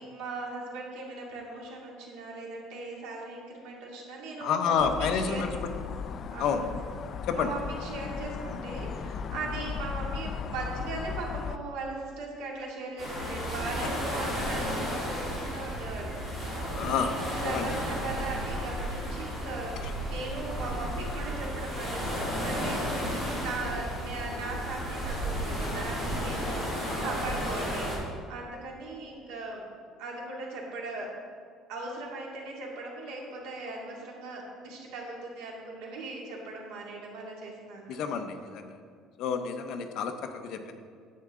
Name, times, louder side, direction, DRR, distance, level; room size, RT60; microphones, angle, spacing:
voice 1, 0.0-5.5 6.3-6.7 7.3-22.8 23.1-29.6 30.0-31.1 31.7-38.0, right 3 dB, 85° right, -2 dB, 2.2 m, -39 dB
voice 2, 4.4-5.5 6.4-6.6 7.3-7.5 16.7-17.1 17.4-17.7 37.9-38.8 39.2-40.1 40.4-40.7, left 6 dB, 50° left, 6 dB, 0.7 m, -29 dB
sound 1, 4.8-11.6, left 6 dB, 30° left, 0.3 m, -36 dB
sound 2, 13.0-28.0, equal, 5° right, 2.4 m, -33 dB
10.5 x 8.2 x 3.7 m, 2.1 s
cardioid pair, 180°, 0 cm